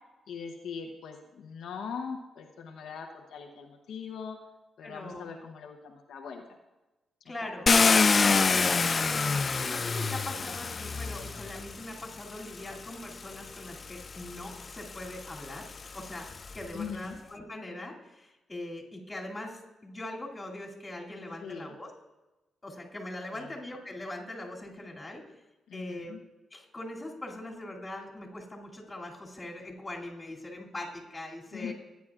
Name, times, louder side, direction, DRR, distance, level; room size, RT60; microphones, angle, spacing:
voice 1, 0.3-4.4 4.8-6.4 7.4-7.5 16.7-17.2 21.4-21.7 23.3-23.5 25.7-26.2 31.5-31.7, left 6 dB, 80° left, 2 dB, 0.9 m, -41 dB
voice 2, 4.8-5.3 7.2-7.7 8.1-21.9 22.6-25.2 25.7-26.2 26.5-31.7, left 1 dB, 20° left, -2 dB, 2.6 m, -41 dB
Car, 7.7-11.8 12.7-12.8 13.3-16.6, left 4 dB, 40° left, 0.4 m, -27 dB
16.5 x 9.3 x 2.4 m, 1.1 s
cardioid pair, 85°, 0 cm